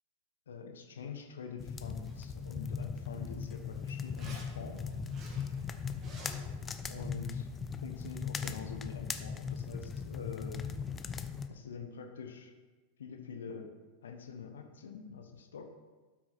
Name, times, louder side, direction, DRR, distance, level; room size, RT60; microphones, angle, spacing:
voice 1, 0.5-4.8 6.9-7.5 7.8-10.6 11.5-12.5 13.0-13.7 14.0-15.7, left 6 dB, 65° left, 5 dB, 1.0 m, -45 dB
sound 1, 1.6-11.5, left 6 dB, 20° left, 0.6 m, -39 dB
Zipper (clothing), 1.8-8.5, right 2 dB, 30° right, 1.9 m, -56 dB
12.0 x 6.2 x 4.4 m, 1.3 s
figure-of-eight pair, 90°, 0 cm